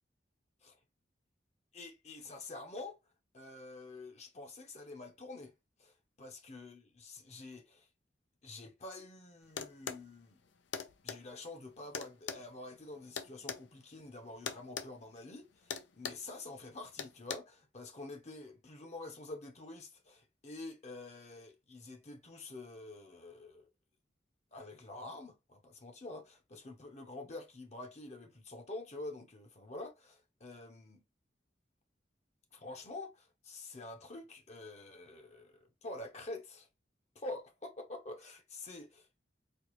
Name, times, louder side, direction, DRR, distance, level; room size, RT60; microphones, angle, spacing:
voice 1, 1.7-3.0 3.3-5.5 5.8-7.9 8.4-10.4 11.0-23.7 24.5-31.0 32.5-36.7 37.1-39.1, left 2 dB, 40° left, 0.8 m, -47 dB
sound 1, 9.6-10.0 10.7-11.2 11.9-13.6 14.5-14.9 15.2-15.4 15.7-16.3 17.0-17.4, left 7 dB, 90° left, 0.6 m, -40 dB
4.3 x 2.3 x 3.0 m
head